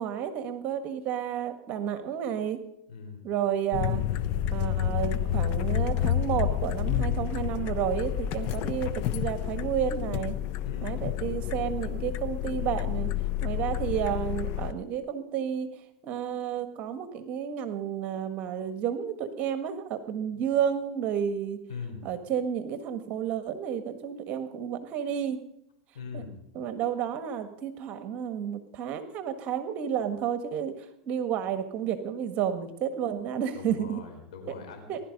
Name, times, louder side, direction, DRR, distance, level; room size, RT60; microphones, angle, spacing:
voice 1, 0.0-2.6 3.2-4.0 4.5-10.3 10.8-13.1 13.4-21.6 22.0-25.4 26.1-26.2 26.5-34.0 34.9-35.0, right 9 dB, 45° right, 9 dB, 1.6 m, -31 dB
voice 2, 2.9-3.2 10.6-11.0 21.7-22.1 25.9-26.3 33.5-34.9, left 5 dB, 85° left, 4 dB, 4.4 m, -41 dB
sound 1, 3.7-14.7, left 10 dB, 55° left, 0.9 m, -29 dB
20.0 x 11.5 x 5.4 m, 0.78 s
supercardioid pair, 115°, 3 cm